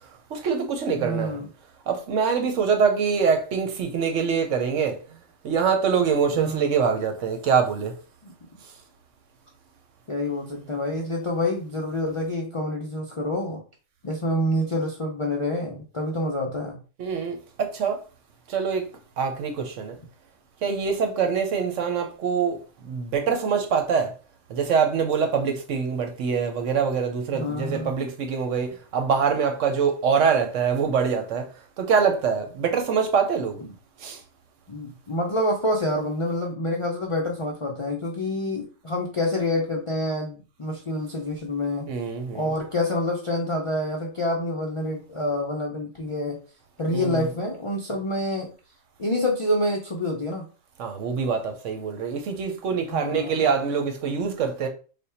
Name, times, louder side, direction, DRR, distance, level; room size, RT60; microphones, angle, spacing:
voice 1, 0.3-1.4 1.9-5.0 5.4-7.9 17.0-18.0 18.5-18.8 19.2-20.0 20.6-22.6 22.8-24.1 24.5-31.5 31.8-33.6 34.0-34.2 41.9-42.5 46.9-47.3 50.8-54.7, right 6 dB, 75° right, 1.1 m, -24 dB
voice 2, 1.0-1.5 6.3-6.7 8.2-8.3 10.1-13.6 14.0-16.8 27.3-27.9 34.7-41.9 42.3-46.4 46.8-48.5 49.0-50.5 52.9-53.4, left 1 dB, 50° left, 0.4 m, -27 dB
3.4 x 2.2 x 4.3 m
omnidirectional pair, 1.3 m